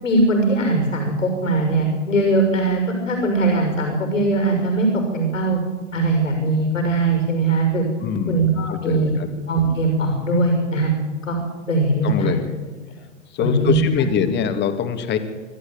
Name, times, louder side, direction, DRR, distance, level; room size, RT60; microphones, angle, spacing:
voice 1, 0.0-5.6 5.9-7.8 8.3-9.1 9.5-10.9 11.2-11.4 11.7-12.4 13.4-14.1, right 2 dB, 80° left, 3 dB, 6.4 m, -20 dB
voice 2, 8.0-9.3 12.0-12.5 13.3-15.2, left 7 dB, 30° left, 7 dB, 2.5 m, -23 dB
26.5 x 12.5 x 9.0 m, 1.3 s
figure-of-eight pair, 105°, 38 cm